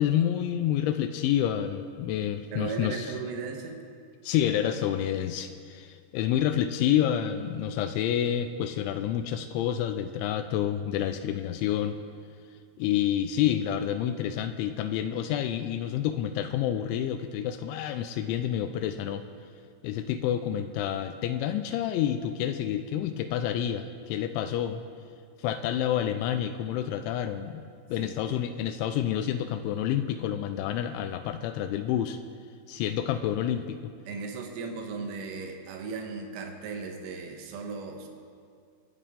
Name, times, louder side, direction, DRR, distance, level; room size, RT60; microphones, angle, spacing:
voice 1, 0.0-3.1 4.2-12.0 12.8-19.2 19.8-24.8 25.4-32.2 32.7-33.9, left 10 dB, 85° left, 9 dB, 2.7 m, -28 dB
voice 2, 2.5-3.8 28.0-28.5 34.1-38.1, right 4 dB, 90° right, 3 dB, 4.1 m, -37 dB
24.0 x 11.5 x 3.7 m, 2.2 s
omnidirectional pair, 5.9 m